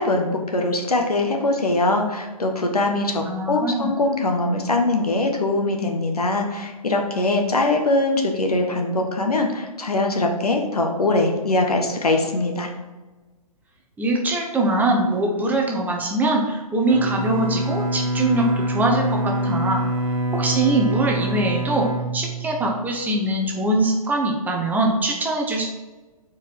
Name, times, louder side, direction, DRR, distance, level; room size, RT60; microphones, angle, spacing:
voice 1, 0.0-12.7, left 2 dB, 80° left, 3 dB, 1.4 m, -22 dB
voice 2, 3.3-3.9 14.0-19.9 20.3-21.9 22.1-25.7, right 2 dB, 10° right, 0 dB, 0.9 m, -22 dB
Bowed string instrument, 16.9-22.9, right 2 dB, 60° right, 1.4 m, -25 dB
6.8 x 4.7 x 4.6 m, 1.2 s
figure-of-eight pair, 130°, 19 cm